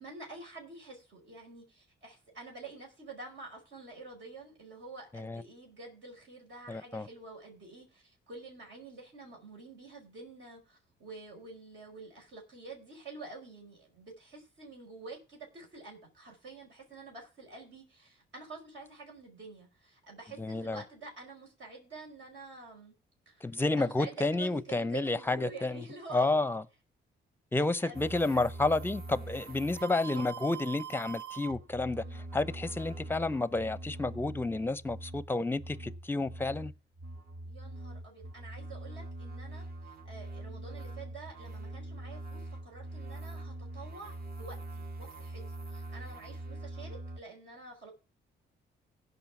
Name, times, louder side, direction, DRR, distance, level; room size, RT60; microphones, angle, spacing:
voice 1, 0.0-23.0 23.3-23.4 23.8-26.4 27.6-28.4 29.9-30.2 32.0-32.2 37.4-39.7 40.1-45.4 45.7-47.9, right 3 dB, 70° right, 5.3 m, -48 dB
voice 2, 6.7-7.1 20.4-20.8 23.4-25.8 26.1-26.7 27.5-36.7, left 2 dB, 10° left, 0.6 m, -30 dB
sound 1, 27.9-47.2, right 2 dB, 50° right, 1.4 m, -43 dB
16.0 x 5.6 x 6.0 m
cardioid pair, 90°, 20 cm